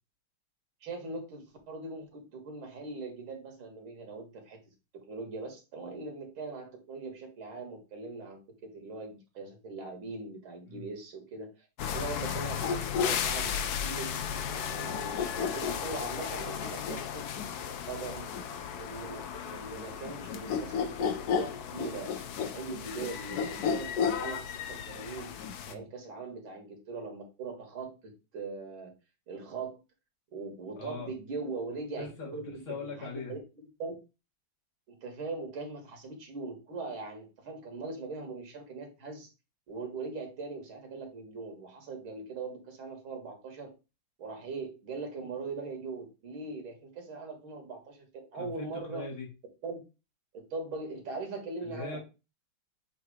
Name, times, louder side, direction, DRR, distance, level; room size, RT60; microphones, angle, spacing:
voice 1, 0.8-4.6 5.1-13.5 13.8-14.1 14.5-15.2 15.5-17.3 17.9-18.3 18.8-24.4 24.7-25.3 25.7-28.9 29.3-29.8 30.3-34.0 34.9-39.3 39.7-43.7 44.2-49.0 49.6-49.8 50.3-52.0, right 3 dB, 85° right, 3 dB, 2.5 m, -41 dB
Monos Aulladores - Howler monkeys, 11.8-25.7, left 7 dB, 65° left, 1.0 m, -33 dB
voice 2, 30.8-31.1 32.0-32.3 32.7-33.3 48.3-49.3 51.6-52.0, left 4 dB, 90° left, -2 dB, 3.0 m, -40 dB
7.8 x 2.8 x 4.9 m, 0.29 s
omnidirectional pair, 2.2 m